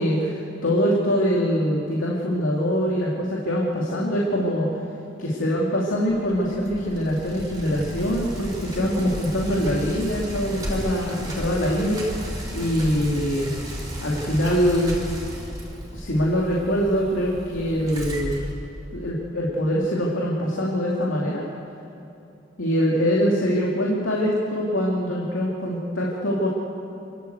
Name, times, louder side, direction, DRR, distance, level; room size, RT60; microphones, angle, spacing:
voice 1, 0.0-4.7 5.2-13.5 14.0-14.9 15.9-18.3 18.9-21.5 22.6-26.5, equal, 85° left, -4 dB, 2.7 m, -23 dB
Bicycle, 6.1-19.2, equal, 20° right, 4.5 m, -34 dB
28.5 x 13.0 x 8.1 m, 2.8 s
head